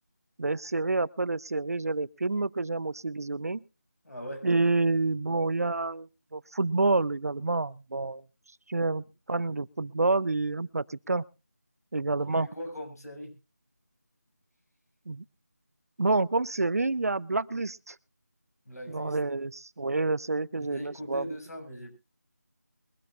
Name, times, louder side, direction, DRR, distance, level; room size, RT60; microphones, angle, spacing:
voice 1, 0.4-3.6 4.4-8.2 8.7-11.2 11.9-12.5 15.1-15.2 16.0-18.0 18.9-21.3, right 3 dB, 60° right, 19 dB, 0.6 m, -28 dB
voice 2, 4.0-4.4 12.2-13.3 18.6-19.2 20.5-21.9, equal, 70° left, 4 dB, 6.5 m, -40 dB
22.5 x 12.5 x 2.5 m, 0.29 s
figure-of-eight pair, 170°, 9 cm